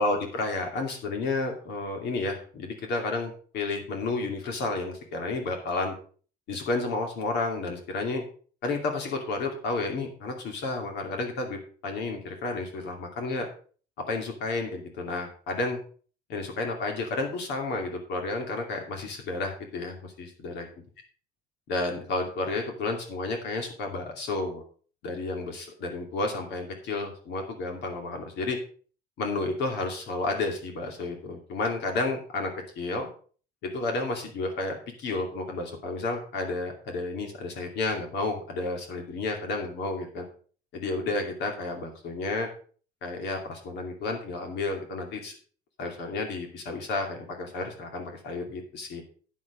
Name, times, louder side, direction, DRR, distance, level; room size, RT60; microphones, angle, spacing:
voice 1, 0.0-5.9 6.5-8.2 8.6-13.5 14.1-15.8 16.3-20.7 21.7-24.6 25.0-28.6 29.2-33.1 33.6-40.2 40.7-42.5 43.0-45.3 45.8-49.0, left 3 dB, 70° left, 3 dB, 2.5 m, -31 dB
9.5 x 7.2 x 5.1 m, 0.42 s
cardioid pair, 150°, 18 cm